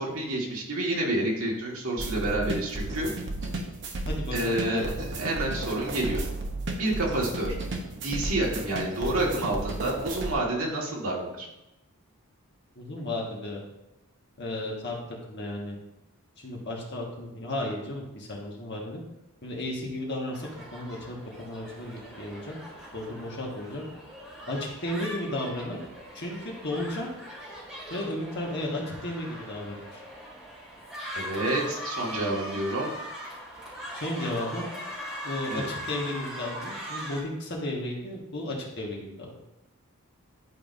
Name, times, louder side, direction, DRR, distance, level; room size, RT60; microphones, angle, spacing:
voice 1, 0.0-3.1 4.3-4.9 5.2-6.2 6.8-7.6 8.0-11.5 31.1-32.9 35.5-35.7, right 1 dB, 75° right, -2 dB, 1.6 m, -29 dB
sound 1, 2.0-10.3, right 2 dB, 50° right, 0.8 m, -34 dB
voice 2, 4.1-4.8 12.7-13.6 14.4-15.0 15.3-15.8 16.4-19.0 19.4-22.5 22.9-23.8 24.5-25.8 26.1-27.1 27.9-30.0 33.9-34.7 35.2-39.3, left 1 dB, 50° left, -2 dB, 1.5 m, -34 dB
sound 2, 20.3-37.2, equal, 5° right, 1.9 m, -40 dB
11.0 x 4.6 x 2.6 m, 0.91 s
head